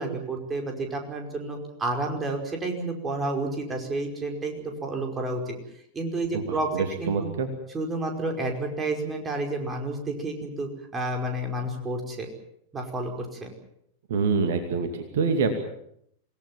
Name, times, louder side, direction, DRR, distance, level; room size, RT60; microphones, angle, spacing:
voice 1, 0.0-5.6 5.9-7.3 7.7-12.3 12.7-13.5, right 2 dB, 20° right, 3 dB, 5.2 m, -30 dB
voice 2, 6.3-7.5 14.1-15.5, right 5 dB, 60° right, 6 dB, 2.5 m, -26 dB
27.5 x 18.0 x 7.5 m, 0.72 s
figure-of-eight pair, 90°, 0 cm